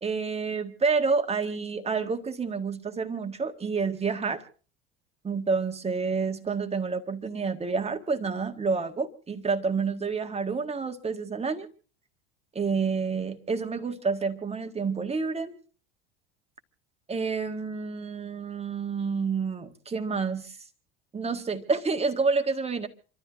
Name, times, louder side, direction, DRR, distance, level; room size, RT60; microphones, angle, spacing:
voice 1, 0.0-4.4 5.2-11.7 12.5-15.5 17.1-20.6 21.1-22.9, right 4 dB, 20° right, 7 dB, 1.8 m, -29 dB
27.5 x 13.0 x 3.6 m, 0.39 s
figure-of-eight pair, 75°, 30 cm